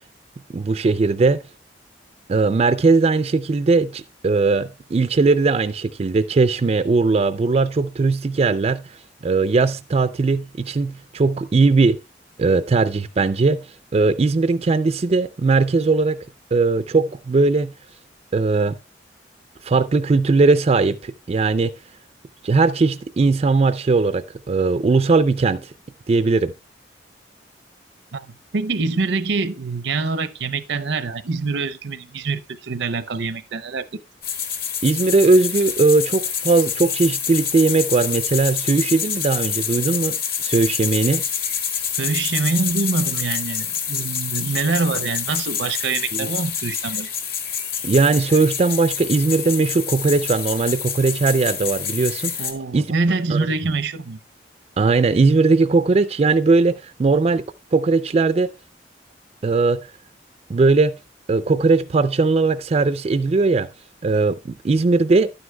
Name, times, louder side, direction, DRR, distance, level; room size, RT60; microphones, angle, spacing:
voice 1, 0.5-1.4 2.3-12.0 12.4-16.2 16.5-17.7 18.3-18.8 19.6-21.7 22.4-25.7 26.1-26.5 34.8-40.2 40.4-41.2 46.1-46.3 47.8-52.4 52.7-52.8 53.3-53.4 54.8-58.5 59.4-59.9 60.5-61.0 61.3-63.7 64.0-65.3, right 3 dB, 35° right, 0.3 m, -19 dB
voice 2, 28.1-34.0 42.0-47.1 52.4-54.2, right 3 dB, 75° right, 0.6 m, -25 dB
sound 1, 34.2-52.5, left 7 dB, 55° left, 1.8 m, -27 dB
11.5 x 9.5 x 2.2 m
head